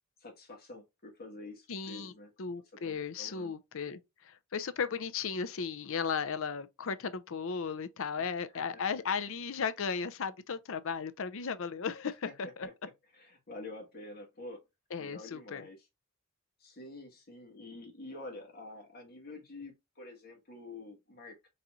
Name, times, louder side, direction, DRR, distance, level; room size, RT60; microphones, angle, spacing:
voice 1, 0.2-2.3 2.8-3.6 8.2-8.8 12.2-12.3 13.1-14.6 15.0-15.9 16.6-21.5, left 2 dB, 45° left, 1.6 m, -48 dB
voice 2, 1.7-2.1 2.4-12.7 14.9-15.7, left 6 dB, 65° left, 0.5 m, -35 dB
4.2 x 4.0 x 2.3 m
head